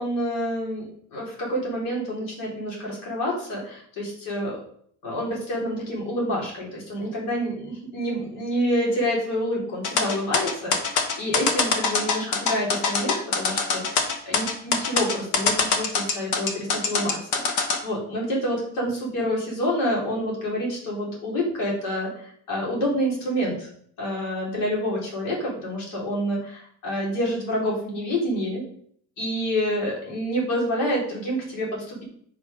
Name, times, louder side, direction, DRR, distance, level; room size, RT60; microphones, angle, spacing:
voice 1, 0.0-4.6 5.0-17.2 17.4-23.7 24.0-28.6 29.2-32.0, equal, 80° left, -3 dB, 3.8 m, -28 dB
sound 1, 9.8-17.8, left 5 dB, 60° left, 1.3 m, -23 dB
9.4 x 4.9 x 5.1 m, 0.63 s
cardioid pair, 170°, 33 cm